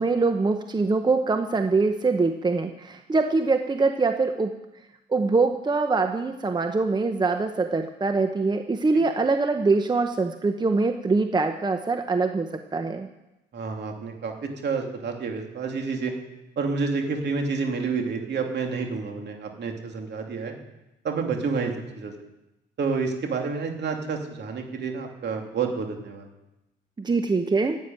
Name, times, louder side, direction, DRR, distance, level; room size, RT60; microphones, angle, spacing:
voice 1, 0.0-4.5 5.1-13.1 27.0-27.8, right 3 dB, 20° right, 6 dB, 0.9 m, -23 dB
voice 2, 13.5-16.1 16.6-20.5 21.0-22.1 22.8-26.3, right 4 dB, 60° right, 3 dB, 2.8 m, -29 dB
11.5 x 9.3 x 9.1 m, 0.94 s
cardioid pair, 90°, 20 cm